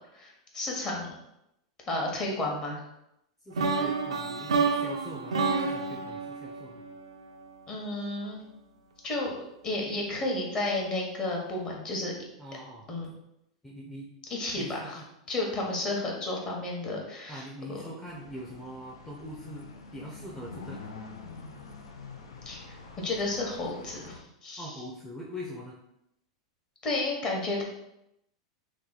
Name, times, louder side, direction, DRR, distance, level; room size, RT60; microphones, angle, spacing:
voice 1, 0.1-1.1 1.9-2.9 7.7-8.4 9.0-9.3 9.6-12.1 12.9-13.1 14.3-15.0 15.3-17.8 22.4-22.6 23.0-24.7 26.8-27.6, left 2 dB, 30° left, -1 dB, 1.1 m, -32 dB
voice 2, 3.4-6.8 12.4-12.9 13.6-14.2 14.5-15.1 17.3-20.8 24.6-25.8, equal, 5° left, -4 dB, 0.6 m, -43 dB
sound 1, 3.5-7.5, right 4 dB, 90° right, 0.4 m, -29 dB
sound 2, 18.0-24.2, left 4 dB, 75° left, 0.4 m, -46 dB
3.0 x 2.2 x 3.9 m, 0.83 s
hypercardioid pair, 110°, 3 cm